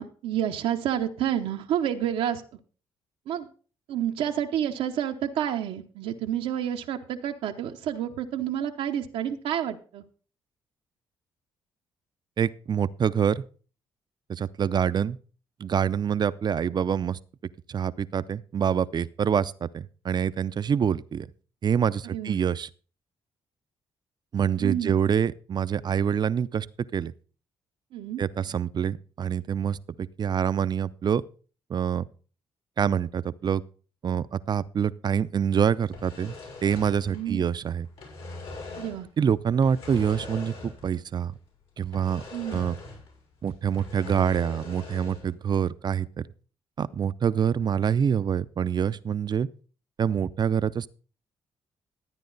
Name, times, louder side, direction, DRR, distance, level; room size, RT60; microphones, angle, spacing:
voice 1, 0.0-2.4 3.3-3.5 3.9-10.0 22.1-22.4 24.6-25.0 27.9-28.2 37.1-37.5 38.8-39.1 42.3-42.6, right 10 dB, 85° right, 0.9 m, -29 dB
voice 2, 12.4-13.4 14.3-15.2 15.6-17.2 17.7-21.3 21.6-22.7 24.3-26.7 26.9-27.1 28.2-31.2 31.7-32.0 32.8-33.6 34.0-36.3 36.6-37.9 39.2-41.3 41.8-42.2 42.5-42.8 43.4-46.1 46.8-49.5 50.0-50.9, right 8 dB, 45° right, 0.6 m, -26 dB
sound 1, 35.8-37.6 37.8-39.1 39.6-41.0 41.2-41.3 41.9-43.2 43.5-45.3, left 3 dB, 70° left, 5.8 m, -41 dB
12.5 x 9.1 x 4.0 m
supercardioid pair, 65°, 10 cm